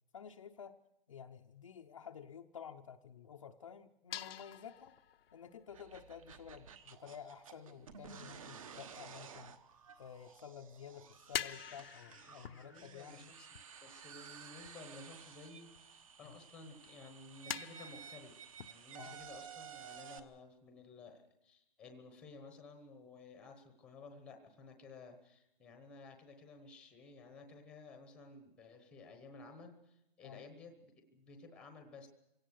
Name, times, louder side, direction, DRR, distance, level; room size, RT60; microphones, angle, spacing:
voice 1, 0.1-0.7 1.1-4.9 5.3-9.5 10.0-13.3 16.2-16.4 19.0-19.2 30.2-30.4, left 7 dB, 35° left, 3 dB, 0.7 m, -52 dB
sound 1, 4.1-7.4 8.4-9.0 9.2-10.6 10.8-16.1 16.4-16.5 16.8-17.0 17.5-19.0, left 9 dB, 70° left, 0.8 m, -46 dB
sound 2, 5.7-20.2, right 7 dB, 35° right, 1.2 m, -54 dB
voice 2, 11.4-13.5 13.8-18.4 18.7-32.1, left 3 dB, 5° left, 5 dB, 1.0 m, -55 dB
25.0 x 17.5 x 6.4 m, 0.85 s
hypercardioid pair, 170°, 30 cm